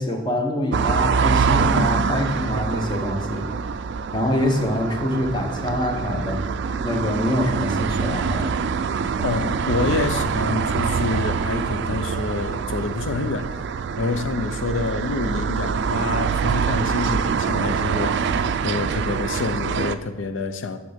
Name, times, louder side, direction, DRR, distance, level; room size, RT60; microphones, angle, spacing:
voice 1, 0.0-3.5 4.1-6.4 6.8-8.6, left 1 dB, 25° left, 1.0 m, -25 dB
sound 1, 0.7-20.0, right 6 dB, 65° right, 0.4 m, -25 dB
voice 2, 9.2-20.8, left 3 dB, 80° left, 0.6 m, -27 dB
6.4 x 5.9 x 5.1 m
head